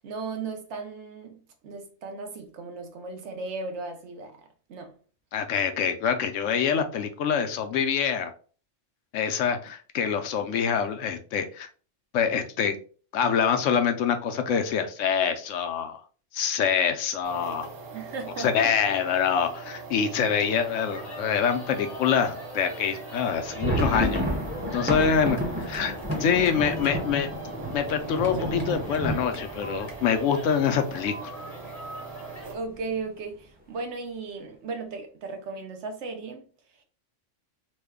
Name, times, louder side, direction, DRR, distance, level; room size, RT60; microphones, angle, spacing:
voice 1, 0.0-4.9 17.9-19.0 25.0-25.1 32.5-36.8, right 4 dB, 65° right, 1.0 m, -36 dB
voice 2, 5.3-8.3 9.1-11.7 12.1-12.8 13.1-16.0 16.3-17.7 18.4-24.2 24.7-27.3 27.7-31.3, left 7 dB, 80° left, 0.9 m, -25 dB
sound 1, 17.2-32.6, right 4 dB, 85° right, 1.2 m, -41 dB
sound 2, 20.4-32.5, left 2 dB, 40° left, 0.8 m, -44 dB
sound 3, 23.3-31.0 31.3-31.4 31.7-31.9 32.4-32.9, equal, 10° right, 0.7 m, -31 dB
3.1 x 2.1 x 3.4 m
omnidirectional pair, 1.3 m